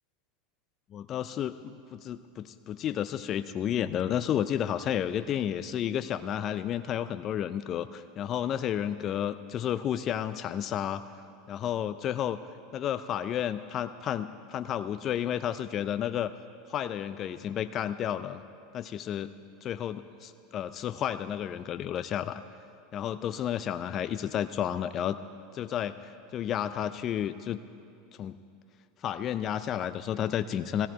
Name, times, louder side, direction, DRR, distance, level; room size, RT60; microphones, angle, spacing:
voice 1, 0.9-11.0 11.5-12.4 12.7-16.3 16.7-18.4 18.7-19.3 19.6-22.4 22.9-25.2 25.5-27.6 28.2-28.4 29.0-30.9, left 10 dB, 40° left, 12 dB, 0.4 m, -31 dB
17.0 x 15.0 x 4.6 m, 2.5 s
hypercardioid pair, 100°, 0 cm